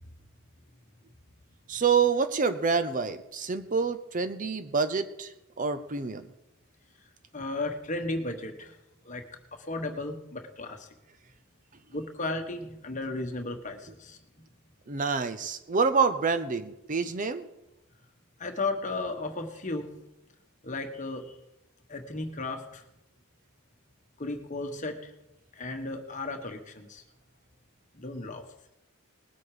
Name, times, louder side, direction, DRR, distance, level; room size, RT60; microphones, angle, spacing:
voice 1, 1.7-6.3 14.9-17.5, right 5 dB, 35° right, 10 dB, 0.6 m, -27 dB
voice 2, 7.3-8.7 9.0-9.2 9.5-10.9 11.9-14.2 18.4-19.9 20.6-21.3 21.9-22.8 24.2-25.1 25.5-27.0 27.9-28.4, left 2 dB, 35° left, 5 dB, 1.3 m, -34 dB
20.0 x 8.2 x 5.0 m, 0.92 s
head